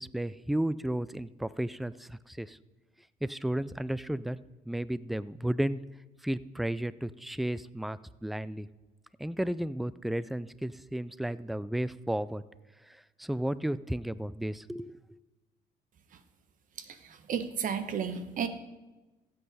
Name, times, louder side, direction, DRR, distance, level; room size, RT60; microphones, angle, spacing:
voice 1, 0.0-2.6 3.2-4.4 4.7-5.8 6.2-8.7 9.2-12.4 13.2-15.0, right 1 dB, ahead, 18 dB, 0.3 m, -33 dB
voice 2, 17.3-18.5, right 7 dB, 55° right, 11 dB, 1.0 m, -32 dB
15.5 x 7.9 x 4.1 m, 1.1 s
cardioid pair, 110°, 17 cm